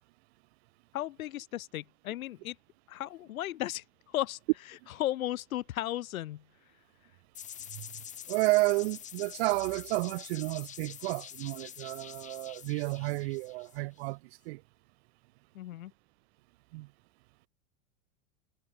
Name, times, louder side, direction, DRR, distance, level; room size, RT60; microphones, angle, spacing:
voice 1, 0.9-2.6 2.9-4.4 5.0-6.4 15.5-15.9, left 14 dB, 80° left, 3.1 m, -35 dB
sound 1, 7.4-14.1, left 9 dB, 20° left, 1.8 m, -46 dB
voice 2, 8.3-14.2 14.5-14.6 16.7-16.9, right 24 dB, 50° right, 1.7 m, -31 dB
supercardioid pair, 160°, 41 cm